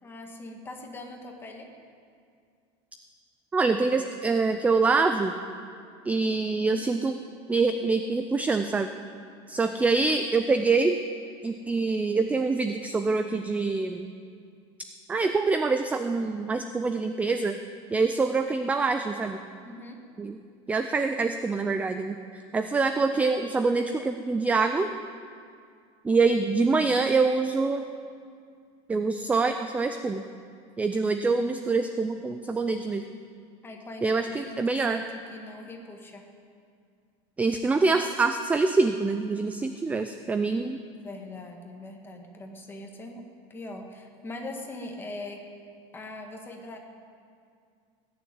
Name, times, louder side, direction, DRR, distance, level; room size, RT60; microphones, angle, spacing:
voice 1, 0.0-1.7 19.6-20.0 33.6-36.3 40.8-43.2 43.5-45.5 45.9-46.8, left 2 dB, 15° left, 2 dB, 1.8 m, -41 dB
voice 2, 3.5-5.3 6.1-7.2 7.5-8.9 9.5-11.0 11.4-14.1 15.1-17.6 17.9-19.4 20.2-20.4 20.7-22.2 22.5-24.9 26.0-27.8 28.9-30.2 30.8-33.1 34.0-35.0 37.4-40.8, right 4 dB, 10° right, 8 dB, 0.4 m, -25 dB
18.0 x 7.1 x 9.5 m, 2.3 s
supercardioid pair, 150°, 16 cm